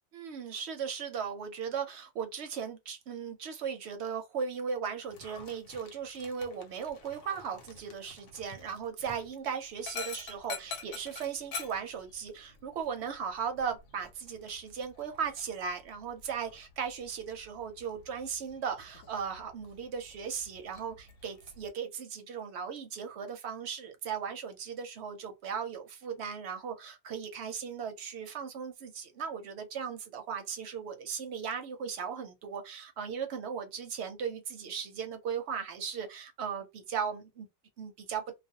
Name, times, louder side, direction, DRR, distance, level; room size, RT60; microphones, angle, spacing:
voice 1, 0.1-37.5 37.8-38.2, right 7 dB, 65° right, 0.7 m, -37 dB
Dog, 5.1-21.7, left 4 dB, 90° left, 1.1 m, -48 dB
2.4 x 2.1 x 2.7 m
omnidirectional pair, 1.4 m